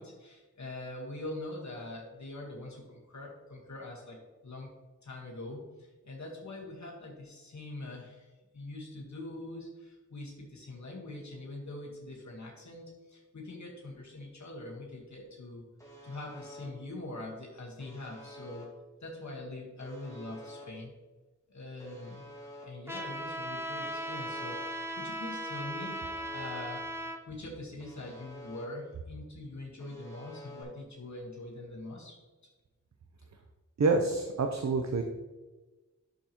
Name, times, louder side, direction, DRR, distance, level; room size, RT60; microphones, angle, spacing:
voice 1, 0.0-4.7 5.0-15.6 16.0-18.7 19.0-20.9 21.5-22.2 22.6-32.2, left 2 dB, 70° left, -2 dB, 1.5 m, -43 dB
Alarm, 15.8-16.6 17.8-18.6 19.8-20.6 21.8-22.6 23.8-24.6 25.8-26.6 27.8-28.6 29.8-30.6, equal, 10° left, 2.0 m, -49 dB
Trumpet, 22.9-27.2, right 1 dB, 10° right, 0.8 m, -37 dB
voice 2, 33.8-35.0, right 3 dB, 65° right, 4 dB, 0.7 m, -27 dB
9.8 x 6.6 x 3.0 m, 1.2 s
wide cardioid pair, 80°, 29 cm